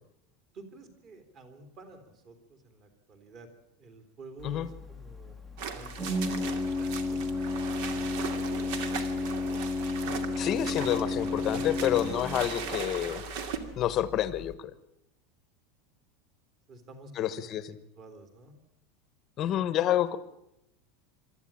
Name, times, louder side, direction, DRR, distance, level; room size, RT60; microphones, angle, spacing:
voice 1, 0.5-3.5 3.8-5.4 5.7-8.4 16.7-18.5, right 2 dB, 30° right, 8 dB, 3.2 m, -51 dB
Organ, 4.4-14.5, left 2 dB, 5° right, 1.1 m, -33 dB
sound 1, 5.6-13.6, right 7 dB, 55° right, 2.5 m, -39 dB
voice 2, 10.1-13.2 13.8-14.7 17.2-17.8 19.4-20.2, left 11 dB, 25° left, 15 dB, 1.2 m, -29 dB
24.5 x 13.5 x 8.7 m, 0.84 s
supercardioid pair, 180°, 0 cm